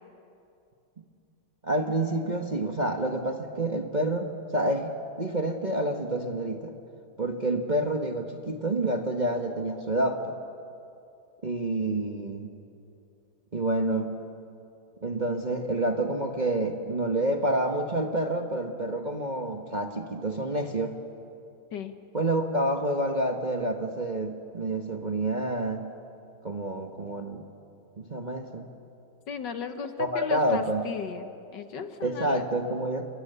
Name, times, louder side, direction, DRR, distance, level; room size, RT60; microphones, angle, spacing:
voice 1, 1.6-4.9 5.2-6.7 7.2-10.3 11.4-12.6 13.5-14.2 15.0-20.9 22.1-25.9 26.4-27.4 28.0-28.7 30.0-30.9 32.0-33.0, right 1 dB, 25° right, 3 dB, 1.1 m, -28 dB
voice 2, 29.3-32.4, left 6 dB, 65° left, 8 dB, 1.7 m, -36 dB
29.0 x 22.5 x 6.8 m, 2.6 s
omnidirectional pair, 2.2 m